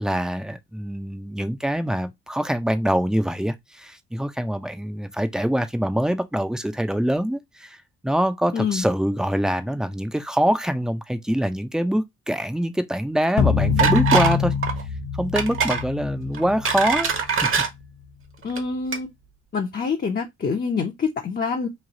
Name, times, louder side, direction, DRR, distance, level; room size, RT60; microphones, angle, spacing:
voice 1, 0.0-7.8 8.0-14.5 15.2-17.1 17.4-17.5, equal, ahead, 0.6 m, -24 dB
voice 2, 8.5-8.8 18.4-19.1 19.5-21.7, left 5 dB, 30° left, 0.8 m, -26 dB
sound 1, 13.4-17.8, left 7 dB, 75° left, 0.9 m, -25 dB
sound 2, 13.8-14.4 14.6-14.8 15.4-15.8 16.3-17.7 18.4-18.6 18.9-19.0, right 6 dB, 45° right, 1.1 m, -22 dB
3.2 x 2.6 x 3.7 m
cardioid pair, 90°, 30 cm